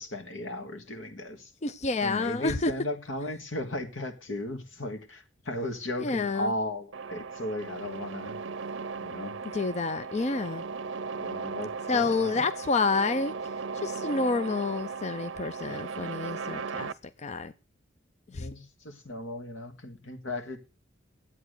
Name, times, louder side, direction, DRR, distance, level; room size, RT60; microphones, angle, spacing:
voice 1, 0.0-1.5 2.0-8.4 9.0-9.3 11.2-12.4 18.3-20.6, left 1 dB, 85° left, 1.8 m, -36 dB
voice 2, 1.6-2.7 6.0-6.5 9.5-10.6 11.9-13.3 13.7-16.9 17.2-17.5 18.3-18.5, left 4 dB, 35° left, 0.5 m, -29 dB
sound 1, 6.9-16.9, right 5 dB, 70° right, 0.6 m, -37 dB
11.0 x 8.5 x 6.6 m
head